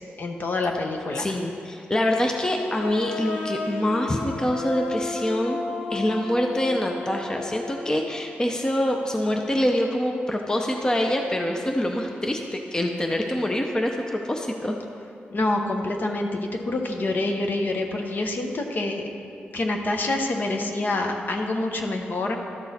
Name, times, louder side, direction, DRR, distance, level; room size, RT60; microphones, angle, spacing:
voice 1, 0.2-1.3 15.3-19.1 19.5-22.4, left 2 dB, 50° left, 3 dB, 0.8 m, -26 dB
voice 2, 1.2-5.6 5.9-14.8, left 1 dB, 15° left, 2 dB, 0.6 m, -25 dB
sound 1, 2.8-8.3, left 3 dB, 85° left, 0.9 m, -33 dB
12.0 x 6.0 x 4.2 m, 2.6 s
wide cardioid pair, 100°, 4 cm